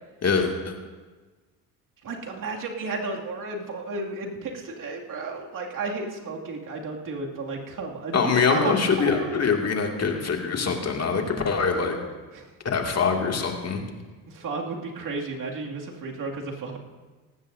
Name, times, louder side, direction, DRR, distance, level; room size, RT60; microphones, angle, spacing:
voice 1, 0.2-0.8 8.1-12.0 12.6-13.8, left 5 dB, 35° left, 2 dB, 2.3 m, -24 dB
voice 2, 2.0-9.4 12.3-12.5 14.3-16.8, right 3 dB, 45° right, 0 dB, 2.4 m, -33 dB
18.0 x 15.0 x 2.7 m, 1.3 s
hypercardioid pair, 65°, 42 cm